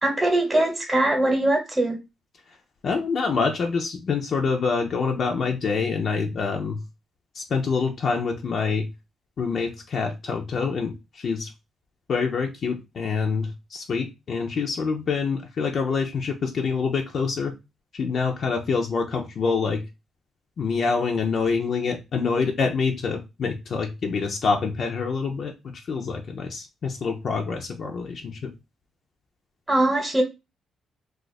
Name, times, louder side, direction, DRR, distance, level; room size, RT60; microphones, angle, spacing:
voice 1, 0.0-2.0 29.7-30.2, right 1 dB, 15° right, 1 dB, 0.9 m, -21 dB
voice 2, 2.8-6.8 7.4-8.9 9.4-11.5 12.1-17.5 17.9-19.8 20.6-25.5 25.9-28.5, left 5 dB, 55° left, 2 dB, 0.5 m, -26 dB
2.4 x 2.4 x 4.0 m, 0.25 s
cardioid pair, 95°, 0 cm